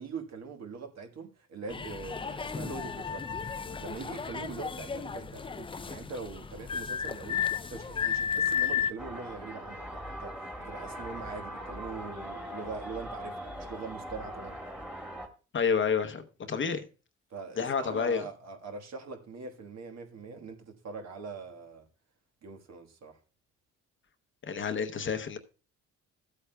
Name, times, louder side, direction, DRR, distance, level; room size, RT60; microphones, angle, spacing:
voice 1, 0.0-3.4 3.8-14.6 17.3-21.9 22.4-23.2, right 4 dB, 60° right, 1.5 m, -42 dB
sound 1, 1.7-8.9, left 7 dB, 20° left, 0.4 m, -33 dB
sound 2, 9.0-15.3, equal, 5° right, 1.7 m, -41 dB
voice 2, 15.5-16.2 16.5-16.8 17.6-18.2 24.4-25.4, left 6 dB, 40° left, 0.9 m, -29 dB
15.0 x 8.2 x 2.2 m
cardioid pair, 90°, 30 cm